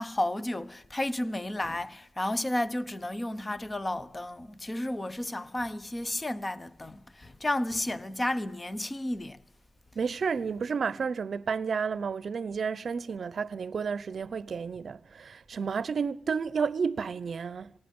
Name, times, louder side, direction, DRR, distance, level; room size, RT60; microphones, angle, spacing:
voice 1, 0.0-9.4, left 1 dB, 15° left, 0.9 m, -32 dB
voice 2, 10.0-17.7, right 5 dB, 50° right, 0.8 m, -31 dB
27.0 x 18.5 x 5.4 m
wide cardioid pair, 160°, 0 cm